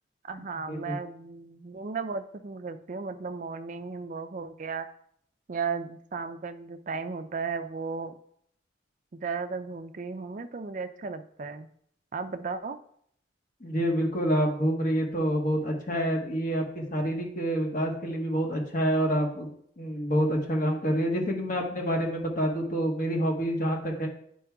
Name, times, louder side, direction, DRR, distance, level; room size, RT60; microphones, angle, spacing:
voice 1, 0.3-4.9 5.5-8.1 9.1-11.7 12.1-12.8, right 5 dB, 45° right, 9 dB, 0.4 m, -35 dB
voice 2, 13.6-19.5 19.8-24.1, equal, 45° left, 0 dB, 1.2 m, -27 dB
9.9 x 4.5 x 2.3 m, 0.67 s
head